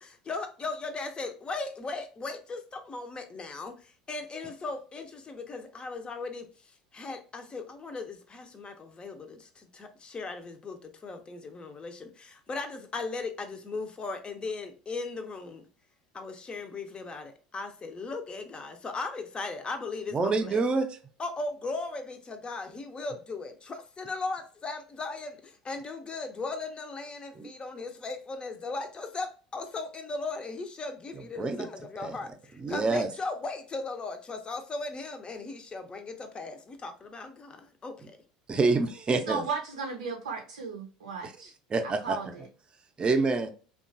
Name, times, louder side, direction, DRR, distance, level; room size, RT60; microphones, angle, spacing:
voice 1, 0.0-6.5 6.9-15.7 16.1-20.6 21.2-38.2, left 3 dB, 25° left, 0.6 m, -37 dB
voice 2, 20.1-20.9 27.4-27.5 31.4-31.7 32.0-32.2 32.6-33.1 38.5-39.4 41.2-41.3 41.7-42.2 43.0-43.5, right 3 dB, 25° right, 0.5 m, -26 dB
voice 3, 39.1-41.5 41.8-42.5, right 5 dB, 85° right, 0.5 m, -35 dB
2.8 x 2.3 x 2.5 m
hypercardioid pair, 75°, 4 cm